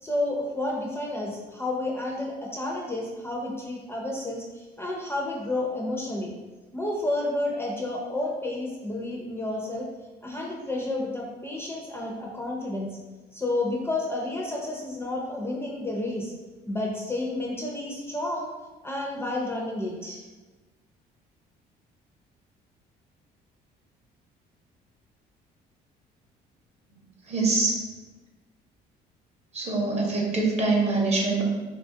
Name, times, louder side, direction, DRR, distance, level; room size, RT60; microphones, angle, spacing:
voice 1, 0.0-6.3 6.7-9.9 10.2-12.9 13.3-16.3 16.7-18.5 18.8-20.2, left 2 dB, 15° left, -2 dB, 0.4 m, -30 dB
voice 2, 26.9-27.8 29.5-31.5, right 3 dB, 40° right, -1 dB, 0.7 m, -25 dB
2.9 x 2.3 x 2.7 m, 1.2 s
cardioid pair, 110°, 17 cm